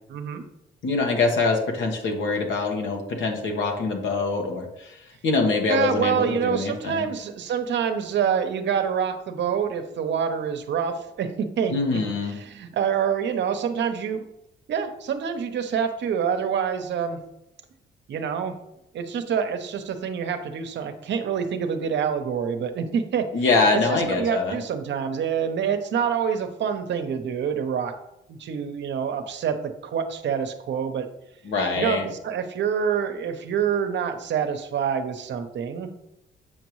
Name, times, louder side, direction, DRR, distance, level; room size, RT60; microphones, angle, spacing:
voice 1, 0.1-0.4 5.7-12.0 12.3-14.2 14.7-17.2 18.1-18.6 18.9-23.3 23.7-27.9 28.3-31.1 31.8-35.9, right 7 dB, 65° right, 7 dB, 0.9 m, -26 dB
voice 2, 0.8-5.0 5.2-7.1 11.7-12.4 23.3-24.6 31.4-32.1, left 3 dB, 70° left, 2 dB, 1.5 m, -24 dB
7.8 x 5.1 x 3.1 m, 0.84 s
cardioid pair, 90°, 20 cm